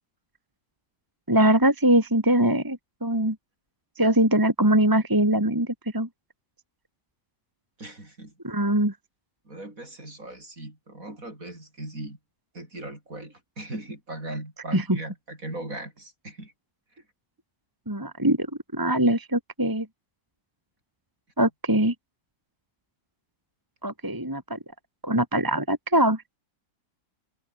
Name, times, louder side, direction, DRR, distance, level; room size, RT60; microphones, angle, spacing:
voice 1, 1.3-3.4 4.0-6.1 8.4-8.9 14.7-15.0 17.9-18.5 18.7-19.9 21.4-21.9 23.8-24.6 25.0-26.2, right 1 dB, 10° right, 2.8 m, -22 dB
voice 2, 7.8-8.3 9.5-12.2 12.5-16.5, right 1 dB, 45° right, 7.9 m, -38 dB
omnidirectional pair, 2.0 m